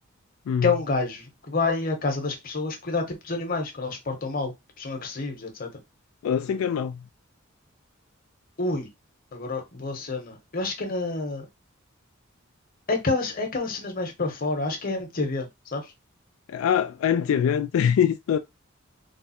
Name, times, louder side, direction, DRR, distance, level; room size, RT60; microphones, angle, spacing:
voice 1, 0.6-5.7 8.6-8.9 9.3-11.5 12.9-15.9, left 3 dB, 45° left, 1.0 m, -28 dB
voice 2, 6.2-7.0 16.5-18.4, left 8 dB, 80° left, 0.3 m, -23 dB
3.5 x 2.0 x 4.2 m
head